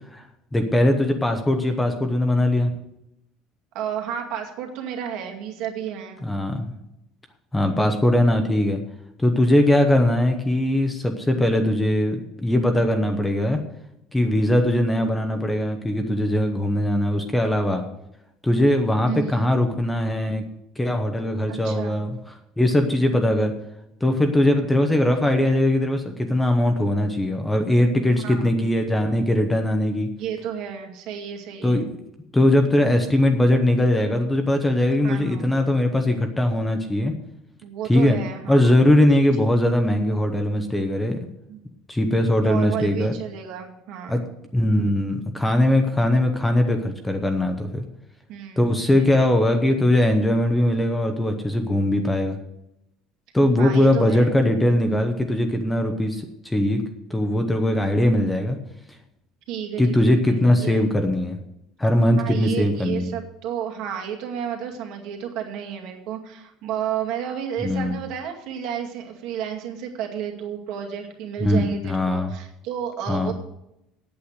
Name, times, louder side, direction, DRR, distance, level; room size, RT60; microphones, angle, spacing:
voice 1, 0.5-2.8 6.2-6.7 7.5-8.8 9.2-13.6 14.1-17.8 18.4-20.4 20.8-23.5 24.0-30.1 31.6-31.8 32.3-37.1 37.9-38.2 38.5-41.2 41.9-43.1 44.1-44.2 44.5-47.8 48.6-52.4 53.3-56.8 57.1-58.6 59.8-61.4 61.8-63.1 67.6-68.0 71.4-72.3 73.1-73.3, left 1 dB, 5° left, 5 dB, 0.9 m, -20 dB
voice 2, 3.7-6.2 19.0-19.5 21.5-22.0 28.2-28.4 30.2-31.9 35.0-35.5 37.6-38.7 39.4-39.5 41.5-41.6 42.4-44.3 48.3-49.2 53.6-54.3 59.5-60.9 62.2-73.3, right 9 dB, 60° right, 2 dB, 2.2 m, -32 dB
8.6 x 8.5 x 7.9 m, 0.85 s
cardioid pair, 160°, 0 cm